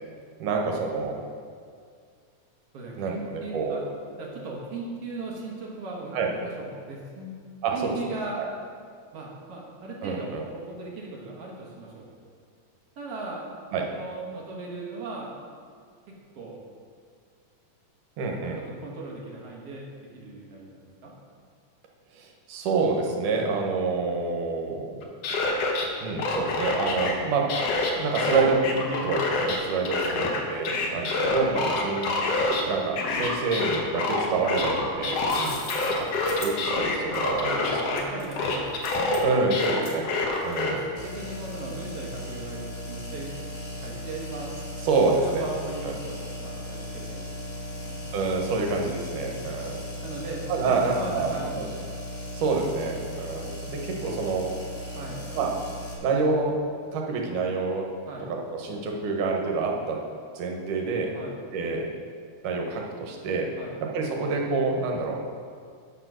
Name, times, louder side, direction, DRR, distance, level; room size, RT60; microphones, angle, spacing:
voice 1, 0.4-1.2 3.0-3.8 6.1-6.3 7.6-8.0 8.4-8.5 10.0-10.4 13.7-13.9 18.2-18.6 22.1-25.0 26.0-27.4 28.0-32.1 32.7-35.6 35.9-37.6 39.2-40.0 40.4-40.8 44.8-45.4 45.8-45.9 48.1-49.8 50.5-51.3 51.6-51.7 52.3-54.5 55.4-55.5 56.0-56.6 56.9-57.9 58.5-60.0 60.3-61.1 61.5-61.9 62.4-63.5 63.8-65.2, right 4 dB, 85° right, 1 dB, 2.7 m, -27 dB
voice 2, 2.7-3.9 4.2-7.3 7.7-8.4 9.1-12.1 13.0-13.5 13.9-15.4 16.1-16.6 18.3-21.1 27.1-27.5 30.0-30.4 31.2-31.4 35.3-35.6 37.5-39.8 40.6-43.3 43.8-44.6 45.1-48.0 48.6-49.4 50.0-51.8 52.8-53.5 55.0-55.2 58.1-58.3 61.1-61.4 63.6-63.8, right 2 dB, 55° right, -3 dB, 2.1 m, -38 dB
sound 1, 25.0-25.9 26.2-27.1 27.5-29.6 29.9-32.6 33.0-38.0 38.4-40.7, left 3 dB, 65° left, 1.8 m, -27 dB
Searching for a coin in a purse, 34.9-40.9, left 5 dB, 85° left, 2.8 m, -43 dB
sound 2, 40.9-55.9, left 1 dB, 35° left, 1.7 m, -37 dB
8.9 x 5.9 x 6.1 m, 2.1 s
omnidirectional pair, 3.6 m